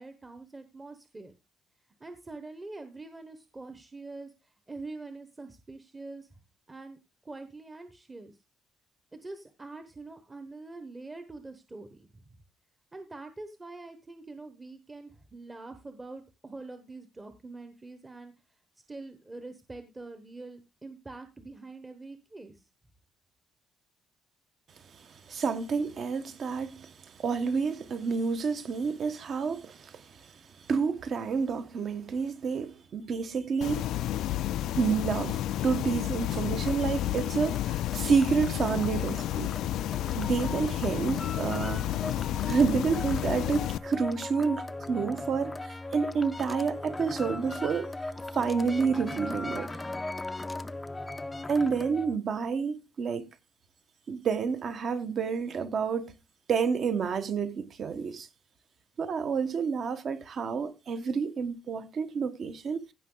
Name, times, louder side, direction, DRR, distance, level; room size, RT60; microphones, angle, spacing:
voice 1, 0.0-1.3 2.0-6.3 6.7-7.0 7.2-8.4 9.1-12.2 12.9-18.3 18.9-22.6, right 3 dB, 15° right, 1.0 m, -44 dB
voice 2, 24.9-33.9 34.8-39.5 40.2-41.8 42.5-47.9 48.3-49.7 51.5-53.3 54.1-56.1 56.5-58.3 59.0-62.9, right 5 dB, 45° right, 1.2 m, -29 dB
sound 1, 33.6-43.8, left 13 dB, 75° left, 0.4 m, -31 dB
sound 2, 34.8-52.2, left 2 dB, 10° left, 0.5 m, -39 dB
16.0 x 5.8 x 3.9 m
cardioid pair, 145°, 0 cm